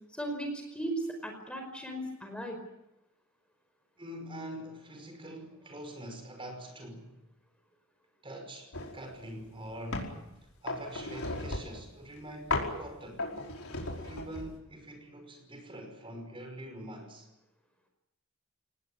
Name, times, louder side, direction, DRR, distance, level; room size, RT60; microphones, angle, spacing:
voice 1, 0.1-2.6, right 1 dB, 5° left, 4 dB, 5.0 m, -36 dB
voice 2, 4.0-7.2 8.2-10.2 10.6-13.3 14.0-17.3, right 1 dB, 25° right, 5 dB, 5.6 m, -44 dB
sound 1, 8.7-9.0 9.4-10.2 10.7-11.9 12.5-12.8 13.2-14.6, left 2 dB, 90° left, 5.2 m, -35 dB
28.0 x 19.5 x 9.5 m, 0.91 s
head